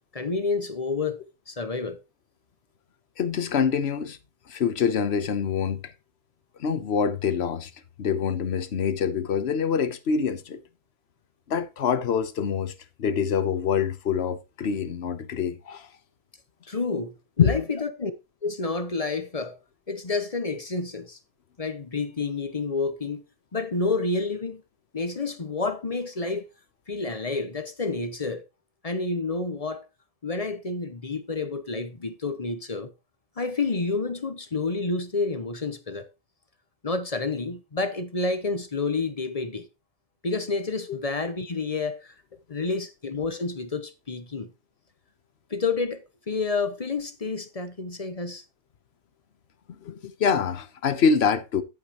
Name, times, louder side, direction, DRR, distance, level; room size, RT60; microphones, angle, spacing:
voice 1, 0.1-1.2 1.5-2.0 16.7-18.1 18.4-19.6 19.9-21.2 21.6-23.2 23.5-24.6 24.9-26.5 26.9-28.4 28.8-29.9 30.2-32.9 33.4-36.1 36.8-39.7 40.2-42.1 42.5-44.5 45.5-48.4, left 3 dB, 30° left, 0.8 m, -29 dB
voice 2, 3.2-4.2 4.5-5.9 6.6-7.7 8.0-10.6 11.5-12.7 13.0-15.9 17.4-17.6 40.9-41.0 42.6-42.7 49.8-51.6, left 6 dB, 50° left, 1.1 m, -25 dB
10.5 x 8.6 x 3.0 m
omnidirectional pair, 1.5 m